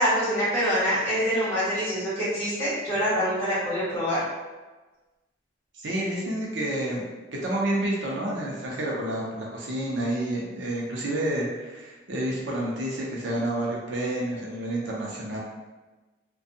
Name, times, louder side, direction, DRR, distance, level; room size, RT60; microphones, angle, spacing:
voice 1, 0.0-4.2, equal, 15° left, -12 dB, 1.5 m, -25 dB
voice 2, 5.8-7.1 7.4-15.4, right 1 dB, 75° right, -3 dB, 0.6 m, -29 dB
2.6 x 2.2 x 2.6 m, 1.2 s
head